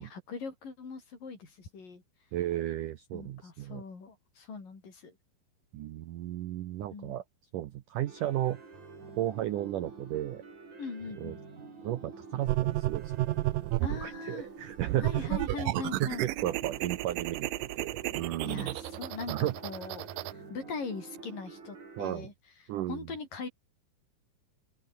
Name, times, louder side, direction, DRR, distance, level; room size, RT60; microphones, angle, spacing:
voice 1, 0.0-2.0 3.1-5.2 6.9-7.2 10.8-11.4 13.8-14.5 15.0-16.3 18.4-19.3 19.6-22.3 22.9-23.5, left 4 dB, 50° left, 7.1 m, -41 dB
voice 2, 2.3-3.8 5.7-7.2 7.5-8.6 9.2-10.4 11.2-11.4 11.8-13.3 13.9-15.3 15.7-18.8 19.3-19.5 22.0-22.3 22.7-23.0, right 13 dB, 70° right, 2.0 m, -34 dB
sound 1, 8.1-22.1, right 4 dB, 45° right, 7.2 m, -48 dB
sound 2, 12.5-14.1 14.8-20.3, right 17 dB, 90° right, 1.9 m, -32 dB
open air
omnidirectional pair, 5.0 m